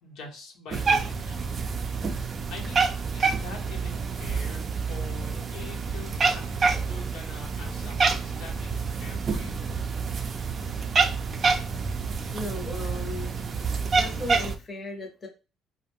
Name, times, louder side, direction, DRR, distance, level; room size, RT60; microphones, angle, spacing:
voice 1, 0.0-1.4 2.5-9.6, left 4 dB, 80° left, 0 dB, 0.8 m, -44 dB
Cat, 0.7-14.6, right 4 dB, 40° right, 0.4 m, -27 dB
voice 2, 12.3-13.4 13.8-15.3, left 2 dB, 35° left, 2 dB, 0.7 m, -36 dB
2.4 x 2.1 x 3.4 m, 0.32 s
cardioid pair, 95°, 0 cm